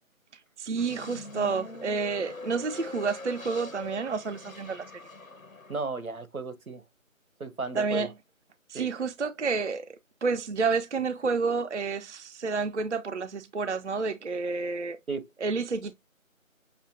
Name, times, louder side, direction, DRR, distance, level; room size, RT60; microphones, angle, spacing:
voice 1, 0.3-4.9 7.7-8.1 8.7-15.0 15.4-15.9, right 4 dB, 60° right, 0.5 m, -30 dB
sound 1, 0.8-5.8, left 2 dB, 75° left, 1.2 m, -43 dB
voice 2, 5.7-6.8 7.4-8.1 8.7-8.9 15.1-15.2, right 3 dB, 90° right, 1.1 m, -34 dB
6.7 x 2.7 x 2.6 m
figure-of-eight pair, 170°, 41 cm